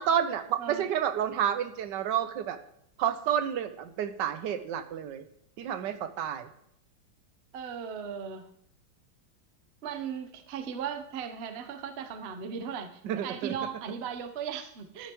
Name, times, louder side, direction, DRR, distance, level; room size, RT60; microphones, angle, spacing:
voice 1, 0.0-2.6 3.0-5.2 5.6-6.5 13.0-13.5, right 9 dB, 70° right, 10 dB, 1.1 m, -30 dB
voice 2, 7.5-8.5 9.8-15.1, right 7 dB, 90° right, 8 dB, 0.5 m, -37 dB
12.5 x 9.8 x 2.9 m, 0.72 s
omnidirectional pair, 2.3 m